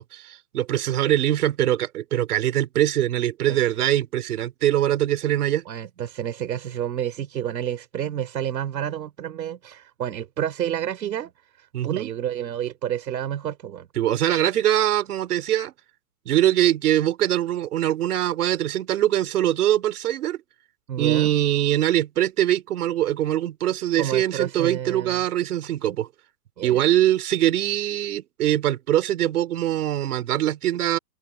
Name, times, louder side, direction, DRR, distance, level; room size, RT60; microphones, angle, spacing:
voice 1, 0.0-5.6 11.7-12.1 14.0-15.7 16.2-20.4 21.0-26.1 26.6-31.0, right 12 dB, 65° right, 4.7 m, -22 dB
voice 2, 5.6-11.3 11.6-13.9 20.9-21.3 24.0-25.2 26.6-26.8, right 10 dB, 80° right, 3.3 m, -29 dB
hypercardioid pair, 160°, 50 cm